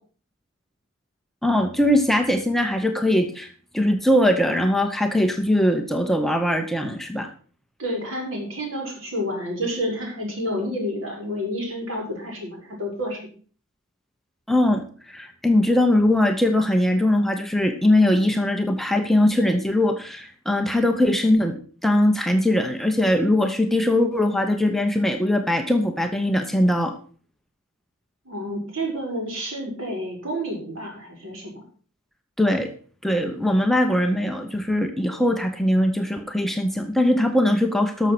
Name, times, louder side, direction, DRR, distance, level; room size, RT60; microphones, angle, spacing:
voice 1, 1.4-7.3 14.5-27.0 32.4-32.7 33.0-38.1, left 1 dB, ahead, 5 dB, 0.9 m, -21 dB
voice 2, 7.8-13.2 28.3-31.6, equal, 70° right, 0 dB, 5.1 m, -29 dB
12.5 x 6.4 x 5.9 m, 0.43 s
head